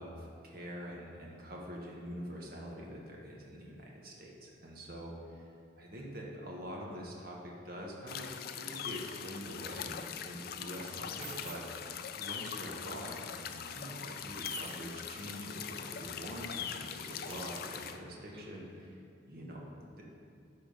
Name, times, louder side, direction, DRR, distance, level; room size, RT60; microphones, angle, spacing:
voice 1, 0.0-5.5 5.8-11.6 12.2-20.0, equal, 50° right, -2 dB, 1.2 m, -45 dB
sound 1, 8.1-18.0, left 8 dB, 50° left, 0.4 m, -42 dB
sound 2, 11.2-13.2 13.4-13.6 14.4-15.6 16.0-16.2 16.5-16.7 17.2-18.7, right 5 dB, 25° right, 0.7 m, -52 dB
11.0 x 3.8 x 5.3 m, 2.3 s
head